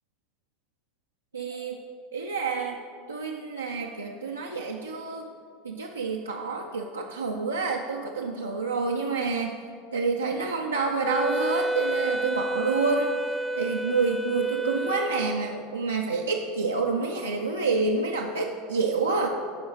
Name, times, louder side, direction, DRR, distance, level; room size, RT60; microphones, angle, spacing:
voice 1, 1.3-1.8 2.1-2.8 3.1-5.3 5.6-9.6 9.9-13.2 13.5-19.3, right 4 dB, 90° right, -1 dB, 0.5 m, -28 dB
Wind instrument woodwind instrument, 11.1-15.6, right 1 dB, 5° right, 0.4 m, -30 dB
12.0 x 4.7 x 4.8 m, 2.2 s
figure-of-eight pair, 80°, 0 cm